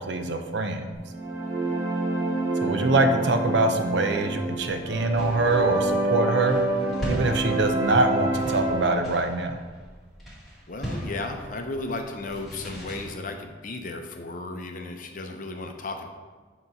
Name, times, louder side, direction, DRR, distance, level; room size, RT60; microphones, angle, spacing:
voice 1, 0.1-0.9 2.6-6.6 7.1-9.6, right 2 dB, 65° right, 6 dB, 0.6 m, -24 dB
sound 1, 1.0-8.9, right 2 dB, 15° right, 1.3 m, -27 dB
sound 2, 4.1-13.1, equal, ahead, 1.7 m, -39 dB
voice 2, 10.7-16.1, left 2 dB, 45° left, 5 dB, 0.6 m, -34 dB
7.9 x 3.0 x 5.3 m, 1.4 s
head